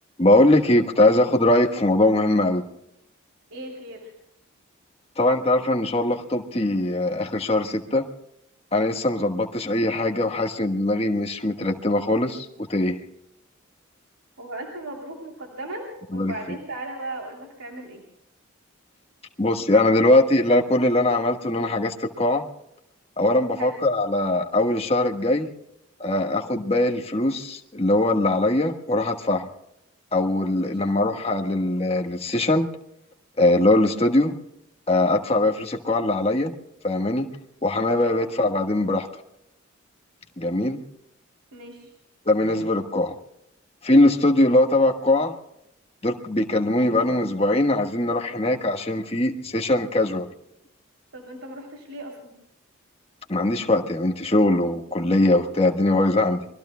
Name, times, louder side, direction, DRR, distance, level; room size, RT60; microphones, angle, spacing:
voice 1, 0.2-2.6 5.2-8.1 8.7-13.0 16.1-16.3 19.4-22.4 23.2-25.5 26.0-29.5 30.1-32.7 33.4-34.3 34.9-36.5 36.8-37.3 37.6-39.1 40.4-40.8 42.3-43.1 43.8-45.3 46.0-50.3 53.3-56.5, left 1 dB, 25° left, 3 dB, 1.3 m, -21 dB
voice 2, 3.5-4.1 14.4-18.0 23.5-23.8 30.5-30.8 38.1-38.3 41.5-41.9 51.1-52.3, right 1 dB, 85° right, 0 dB, 3.1 m, -37 dB
27.0 x 23.0 x 2.2 m, 0.80 s
head